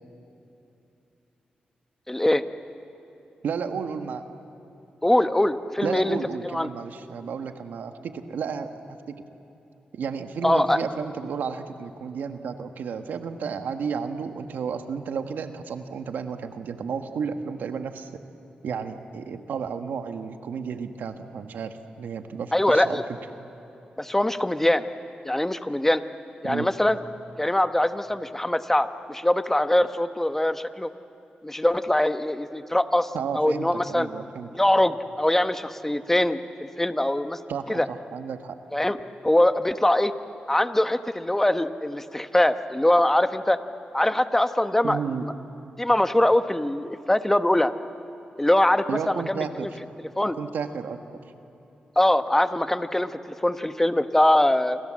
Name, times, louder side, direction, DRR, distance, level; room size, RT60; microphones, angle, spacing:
voice 1, 2.1-2.4 5.0-6.2 6.4-6.7 10.4-10.8 22.5-23.0 24.0-24.8 25.2-26.0 26.4-27.0 27.4-30.9 31.4-34.1 34.5-37.4 37.7-37.9 38.7-39.0 39.2-40.1 40.5-43.6 43.9-45.3 45.8-47.7 48.4-49.7 50.0-50.4 52.0-53.1 53.4-54.8, left 1 dB, 10° left, 10 dB, 1.2 m, -22 dB
voice 2, 3.4-4.2 5.8-9.2 9.9-18.1 18.6-23.0 26.4-26.7 33.1-34.5 37.5-38.6 44.8-45.3 48.9-49.7 50.4-51.0, right 6 dB, 85° right, 7 dB, 1.5 m, -32 dB
29.0 x 25.5 x 7.6 m, 3.0 s
cardioid pair, 70°, 3 cm